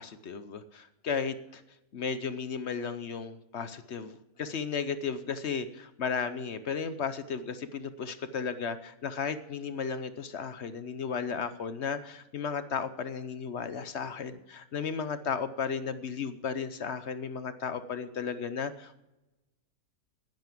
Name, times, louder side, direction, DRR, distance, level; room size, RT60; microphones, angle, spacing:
voice 1, 0.0-1.6 1.9-19.0, left 6 dB, 55° left, 12 dB, 0.9 m, -34 dB
10.5 x 10.5 x 7.5 m, 0.97 s
omnidirectional pair, 1.6 m